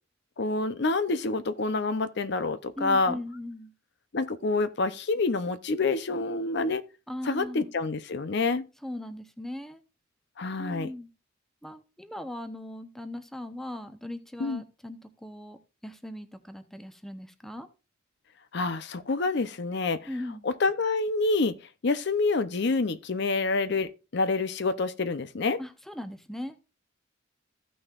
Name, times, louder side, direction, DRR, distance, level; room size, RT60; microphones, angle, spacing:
voice 1, 0.4-3.1 4.1-6.8 7.2-8.7 10.4-10.9 14.4-14.6 18.5-20.1 20.4-21.6 21.8-25.6, left 3 dB, 60° left, 0.6 m, -27 dB
voice 2, 2.8-3.7 7.1-7.7 8.8-9.8 10.6-11.1 11.6-17.7 20.1-20.5 25.6-26.6, left 1 dB, ahead, 0.8 m, -39 dB
15.0 x 6.2 x 2.4 m
head